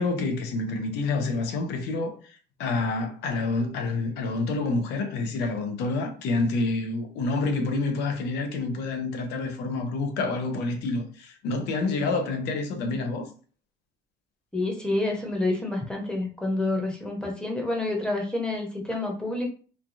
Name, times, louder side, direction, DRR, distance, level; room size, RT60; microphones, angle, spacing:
voice 1, 0.0-2.1 2.6-13.3, left 3 dB, 90° left, 0.6 m, -28 dB
voice 2, 14.5-19.5, left 2 dB, 5° left, 0.9 m, -28 dB
3.2 x 2.3 x 2.6 m
cardioid pair, 110°, 17 cm